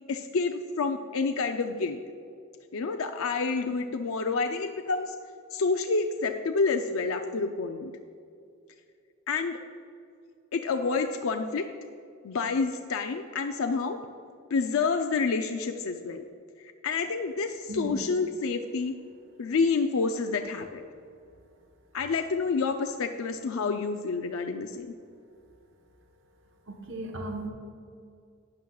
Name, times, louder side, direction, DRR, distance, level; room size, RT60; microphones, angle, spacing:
voice 1, 0.1-2.0 2.7-5.1 5.5-7.9 9.3-9.6 10.5-11.7 12.2-14.0 14.5-16.2 16.6-18.9 19.4-20.8 21.9-24.9, left 4 dB, 75° left, 5 dB, 0.5 m, -28 dB
voice 2, 26.7-27.5, right 1 dB, 60° right, 1 dB, 1.2 m, -35 dB
12.5 x 9.6 x 2.3 m, 2.4 s
head